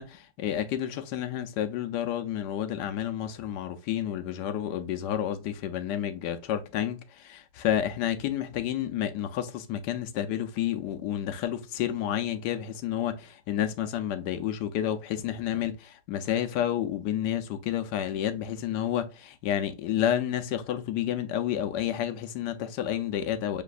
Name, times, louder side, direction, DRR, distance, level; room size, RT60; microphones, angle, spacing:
voice 1, 0.0-23.6, left 10 dB, 75° left, 1.2 m, -30 dB
6.6 x 3.0 x 2.4 m
omnidirectional pair, 1.9 m